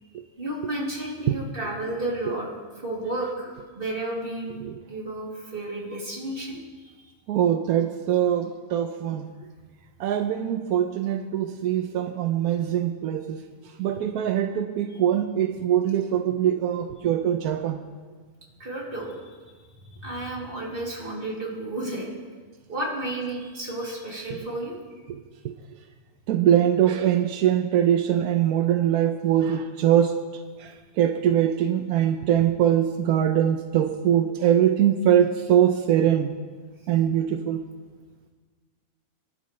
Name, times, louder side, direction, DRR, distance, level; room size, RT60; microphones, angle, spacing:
voice 1, 0.4-2.5 2.7-4.6 4.9-6.6 6.8-6.9 14.9-15.0 18.6-19.3 19.9-22.1 22.7-24.8, right 1 dB, 35° right, -4 dB, 3.0 m, -32 dB
voice 2, 7.3-9.3 10.0-13.4 13.8-17.8 25.1-25.2 25.4-25.5 26.3-30.2 30.6-36.3 36.9-37.6, right 10 dB, 85° right, 6 dB, 1.2 m, -22 dB
23.5 x 11.5 x 3.2 m, 1.5 s
omnidirectional pair, 1.5 m